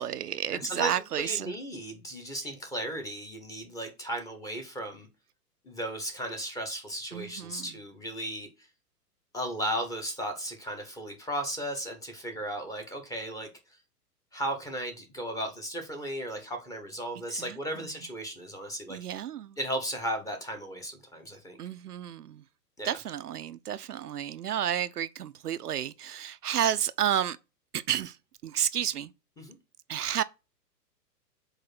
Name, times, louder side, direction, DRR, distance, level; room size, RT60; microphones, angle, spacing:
voice 1, 0.0-1.5 7.1-7.7 17.4-17.6 18.9-19.5 21.6-22.4 22.8-27.4 27.7-28.2 28.4-29.1 29.9-30.2, right 10 dB, 70° right, 0.5 m, -31 dB
voice 2, 0.5-5.1 5.6-8.5 9.3-13.5 14.3-19.0 19.6-21.6 22.8-23.0 29.4-29.6, right 1 dB, 5° left, 0.9 m, -35 dB
7.7 x 2.6 x 5.9 m
figure-of-eight pair, 110°, 49 cm